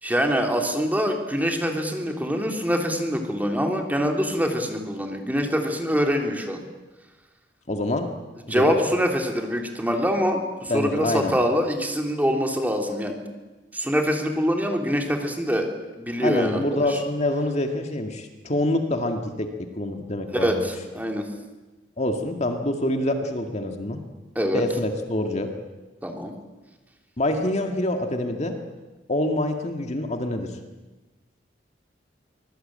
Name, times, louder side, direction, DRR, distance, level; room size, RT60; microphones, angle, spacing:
voice 1, 0.0-6.6 8.5-13.3 13.7-15.7 16.0-17.0 20.3-21.3 24.3-24.6 26.0-26.3, equal, 10° right, 3 dB, 3.4 m, -24 dB
voice 2, 7.7-8.1 8.5-8.8 10.7-11.3 16.2-20.7 22.0-24.0 24.5-25.5 27.2-28.6 29.1-30.6, left 1 dB, 40° left, 5 dB, 2.1 m, -26 dB
25.0 x 21.0 x 8.9 m, 1.2 s
head